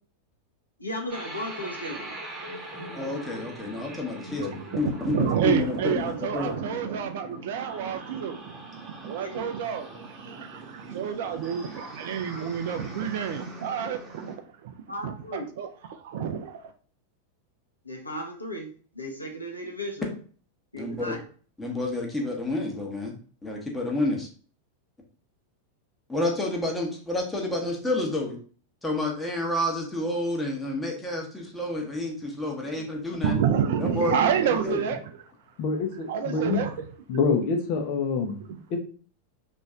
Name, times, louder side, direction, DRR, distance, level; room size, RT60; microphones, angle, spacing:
voice 1, 0.8-2.1 7.1-7.3 9.2-9.5 14.9-15.4 17.8-20.1 20.7-21.2 32.7-32.8, equal, 85° left, 0.8 m, -36 dB
sound 1, 1.1-14.4, right 2 dB, 25° right, 0.8 m, -41 dB
voice 2, 3.0-4.5 4.8-6.6 20.7-21.1 21.6-23.1 23.4-24.3 26.1-28.4 28.8-33.4 33.8-34.8, left 1 dB, 5° left, 1.0 m, -29 dB
voice 3, 4.4-8.5 9.0-14.3 14.6-14.7 15.0-16.6 33.2-35.0 36.1-36.8 37.1-37.2 38.5-38.6, right 8 dB, 55° right, 0.4 m, -29 dB
voice 4, 35.6-36.6 37.1-38.8, left 4 dB, 45° left, 0.7 m, -27 dB
3.1 x 2.6 x 3.6 m
figure-of-eight pair, 90°, 0 cm